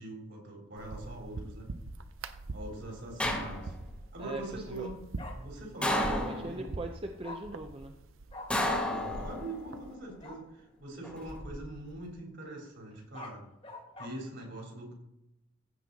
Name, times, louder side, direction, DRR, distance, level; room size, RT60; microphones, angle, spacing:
voice 1, 0.0-1.7 2.5-3.7 4.1-6.7 8.9-13.4 14.0-14.9, right 1 dB, 60° right, -1 dB, 3.7 m, -43 dB
sound 1, 0.8-9.9, right 3 dB, 85° right, 0.7 m, -45 dB
sound 2, 3.2-4.0 5.8-6.8 8.5-9.6 11.0-11.6, left 1 dB, 5° left, 1.5 m, -32 dB
voice 2, 4.2-4.9 5.8-7.9, right 1 dB, 30° right, 4 dB, 0.6 m, -40 dB
Bark, 5.2-5.3 7.2-7.4 8.3-8.5 8.8-9.0 10.2-10.4 12.9-14.1, left 2 dB, 30° left, 1.6 m, -44 dB
15.5 x 6.2 x 4.1 m, 0.85 s
head